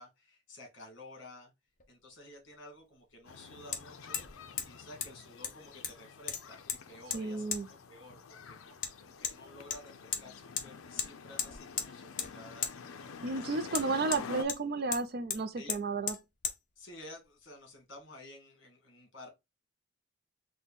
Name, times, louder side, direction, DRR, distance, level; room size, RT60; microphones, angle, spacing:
voice 1, 0.0-1.5 1.9-4.3 4.6-12.7 13.3-13.8 15.6-15.8 16.8-19.3, left 1 dB, 60° left, 1.7 m, -52 dB
Hammer, 1.8-1.9 3.7-3.8 4.1-4.3 4.6-4.7 5.0-5.1 5.4-6.0 6.3-6.8 7.1-7.2 7.5-7.6 8.8-8.9 9.2-9.4 9.7-10.2 10.6-10.7 11.0-11.1 11.4-11.9 12.2-12.3 12.6-12.7 13.7-14.6 14.9-15.0 15.3-15.4 15.7-15.8 16.1-16.2 16.4-16.6, left 8 dB, 40° left, 0.6 m, -35 dB
sound 1, 3.2-14.4, left 5 dB, 85° left, 0.5 m, -48 dB
voice 2, 7.1-7.7 13.2-16.2, right 3 dB, 50° right, 0.4 m, -33 dB
4.1 x 2.2 x 3.5 m
head